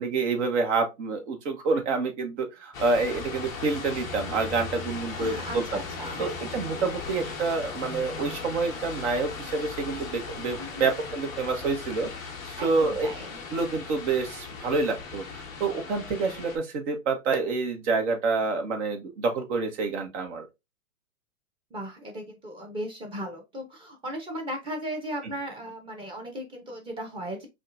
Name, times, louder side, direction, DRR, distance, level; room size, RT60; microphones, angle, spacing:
voice 1, 0.0-5.8 6.2-13.1 13.5-20.5, right 4 dB, 55° right, 1.3 m, -28 dB
sound 1, 2.7-16.6, left 4 dB, 10° left, 0.3 m, -38 dB
voice 2, 5.2-6.2 10.6-10.9 12.6-13.4 21.7-27.5, equal, 10° right, 0.9 m, -37 dB
5.1 x 2.5 x 2.6 m
hypercardioid pair, 135°, 42 cm